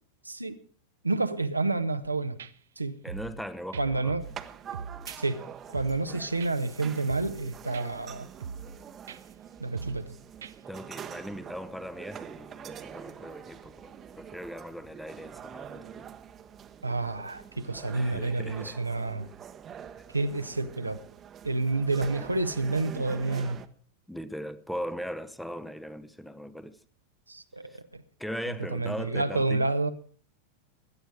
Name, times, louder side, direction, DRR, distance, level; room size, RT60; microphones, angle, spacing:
voice 1, 0.3-0.6 1.0-2.4 2.8-3.0 3.8-4.2 5.2-8.3 9.6-10.2 16.8-19.3 20.1-21.0 21.4-23.6 27.3-28.0 28.7-29.9, right 3 dB, 85° right, 0.9 m, -29 dB
sound 1, 2.0-2.1 2.4-2.5 3.1-3.4 3.7-4.4 4.7-5.2 5.7-6.1 6.4-6.5 7.1-7.4 7.7-7.9 8.4-8.8 9.1-9.2 9.7-10.1 10.4-10.5, right 6 dB, 65° right, 0.6 m, -40 dB
voice 2, 3.0-4.2 6.1-6.3 10.7-16.1 17.9-18.8 20.0-20.1 24.1-26.8 27.6-27.8 28.2-29.7, equal, ahead, 0.8 m, -39 dB
sound 2, 4.2-23.7, right 8 dB, 25° right, 1.0 m, -45 dB
17.0 x 11.5 x 4.8 m
figure-of-eight pair, 90°, 0 cm